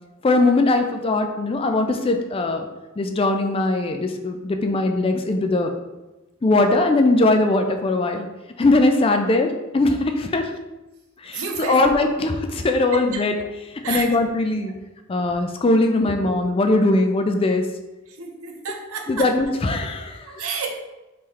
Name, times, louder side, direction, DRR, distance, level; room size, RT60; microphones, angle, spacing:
voice 1, 0.2-2.7 3.0-5.7 6.4-8.3 8.6-10.5 11.2-13.3 13.9-14.7 15.1-17.7 19.1-20.2, left 2 dB, 25° left, 5 dB, 0.3 m, -20 dB
voice 2, 11.3-11.9 12.9-13.5 13.8-14.1 18.2-19.4 20.3-20.8, right 4 dB, 75° right, 3 dB, 0.7 m, -30 dB
3.8 x 3.2 x 4.2 m, 1.1 s
head